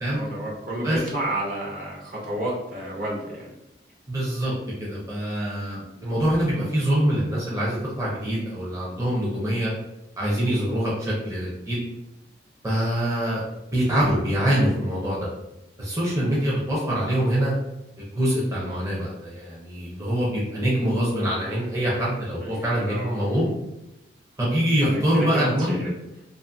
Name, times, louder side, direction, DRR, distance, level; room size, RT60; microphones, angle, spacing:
voice 1, 0.1-3.5 22.4-23.5 24.8-25.9, right 1 dB, 50° right, -4 dB, 0.7 m, -31 dB
voice 2, 4.1-4.5 4.8-9.7 10.2-11.8 12.6-13.4 13.7-15.3 15.8-17.5 18.0-23.5 24.4-25.7, right 1 dB, 20° right, -7 dB, 0.5 m, -24 dB
2.5 x 2.4 x 2.5 m, 0.93 s
head